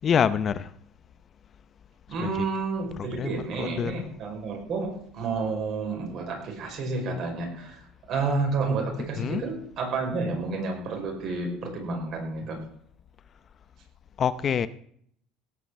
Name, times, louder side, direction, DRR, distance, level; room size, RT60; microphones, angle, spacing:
voice 1, 0.0-0.7 2.2-2.3 3.0-4.0 9.2-9.5 14.2-14.7, left 7 dB, 40° left, 0.7 m, -26 dB
voice 2, 2.1-12.7, right 3 dB, 55° right, 5.6 m, -30 dB
17.0 x 6.0 x 8.0 m
supercardioid pair, 110°, 0 cm